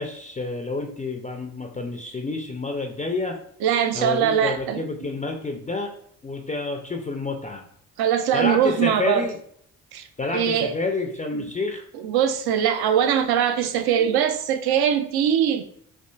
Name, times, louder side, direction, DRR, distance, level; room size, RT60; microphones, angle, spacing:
voice 1, 0.0-3.3 3.9-5.9 6.2-7.6 8.3-9.4 10.2-11.8, left 3 dB, 15° left, 2 dB, 0.4 m, -29 dB
voice 2, 3.6-5.1 8.0-9.2 9.9-10.0 10.3-10.7 11.9-15.6, right 9 dB, 60° right, 8 dB, 0.6 m, -22 dB
4.4 x 2.4 x 2.3 m, 0.66 s
hypercardioid pair, 45°, 44 cm